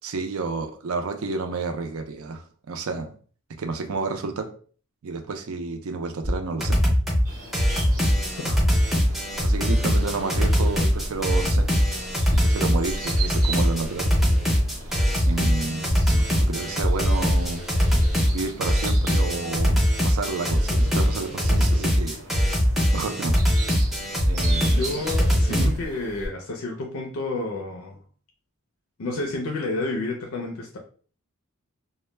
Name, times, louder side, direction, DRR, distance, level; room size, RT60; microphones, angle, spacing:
voice 1, 0.0-3.1 3.6-4.5 5.0-6.8 9.4-11.7 12.4-14.1 15.2-17.6 18.3-22.2 22.9-23.3 24.2-25.0 25.5-25.7, right 4 dB, 70° right, 6 dB, 0.4 m, -30 dB
sound 1, 6.2-6.3 6.6-7.2 7.5-25.7, equal, ahead, 0.5 m, -22 dB
sound 2, 7.2-26.3, right 2 dB, 90° right, 0.9 m, -38 dB
voice 2, 8.4-8.7 24.7-28.0 29.0-30.8, left 2 dB, 70° left, 1 dB, 0.5 m, -30 dB
2.1 x 2.1 x 3.1 m, 0.42 s
head